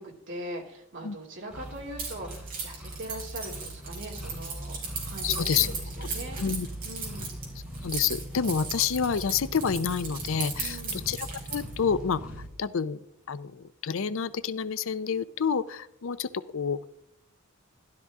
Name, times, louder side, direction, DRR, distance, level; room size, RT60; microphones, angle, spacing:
voice 1, 0.0-6.4 6.8-7.3 10.6-11.0, right 1 dB, 60° right, 0 dB, 2.8 m, -41 dB
sound 1, 1.5-12.5, equal, 5° right, 3.6 m, -40 dB
Keys jangling, 2.0-11.8, right 5 dB, 45° right, 4.2 m, -37 dB
voice 2, 5.2-5.7 6.0-6.1 6.4-6.7 7.8-13.0 13.3-16.8, left 6 dB, 65° left, 15 dB, 0.5 m, -29 dB
12.5 x 12.0 x 3.6 m, 0.73 s
head